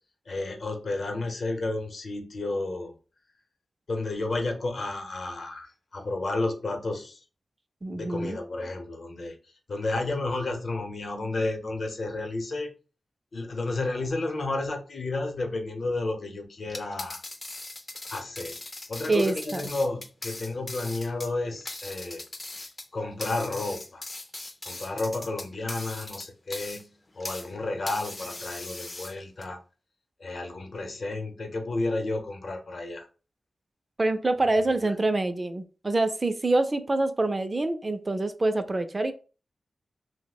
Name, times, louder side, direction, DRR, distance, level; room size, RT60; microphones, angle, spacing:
voice 1, 0.3-3.0 3.9-7.2 7.9-9.4 9.7-12.7 13.3-17.2 18.1-18.6 18.9-22.2 22.9-24.1 24.6-29.6 30.2-33.1 34.8-34.9, left 2 dB, 60° left, 4 dB, 0.7 m, -32 dB
voice 2, 7.8-8.4 19.1-19.6 34.0-39.1, right 2 dB, 30° right, 9 dB, 0.4 m, -26 dB
sound 1, 16.6-27.5 27.9-29.4, left 2 dB, 30° left, 0.5 m, -40 dB
2.8 x 2.1 x 4.0 m, 0.35 s
wide cardioid pair, 85°, 0 cm